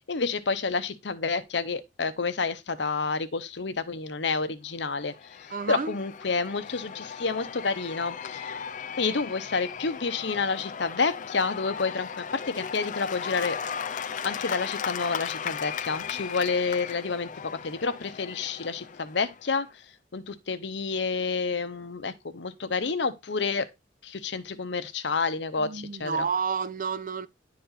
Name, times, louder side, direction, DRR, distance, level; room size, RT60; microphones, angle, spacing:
voice 1, 0.1-5.4 5.7-8.5 9.0-13.6 14.2-19.7 20.1-23.7 24.0-26.3, left 4 dB, 70° left, 0.8 m, -29 dB
Cheering / Applause / Crowd, 4.9-19.6, left 7 dB, 45° left, 0.5 m, -37 dB
voice 2, 5.5-5.9 25.6-27.3, right 5 dB, 45° right, 0.5 m, -30 dB
10.5 x 4.3 x 4.0 m
head